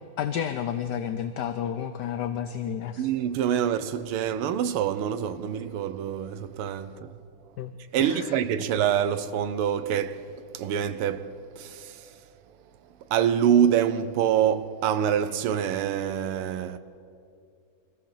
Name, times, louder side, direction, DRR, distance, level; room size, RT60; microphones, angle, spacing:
voice 1, 0.2-3.1 7.6-7.7 8.0-8.3, left 9 dB, 65° left, 1.1 m, -31 dB
voice 2, 3.0-7.2 7.9-12.2 13.1-16.8, right 9 dB, 80° right, 1.7 m, -26 dB
25.0 x 15.0 x 7.2 m
omnidirectional pair, 2.4 m